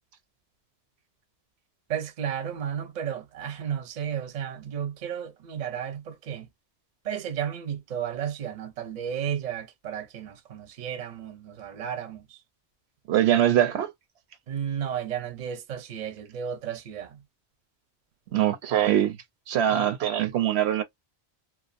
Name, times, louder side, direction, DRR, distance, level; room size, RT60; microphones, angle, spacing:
voice 1, 1.9-6.5 7.0-12.2 14.5-17.2 19.7-19.9, right 8 dB, 50° right, 0.6 m, -33 dB
voice 2, 13.1-13.9 18.3-19.2 19.5-20.8, right 11 dB, 80° right, 0.8 m, -23 dB
2.4 x 2.3 x 2.5 m
omnidirectional pair, 1.1 m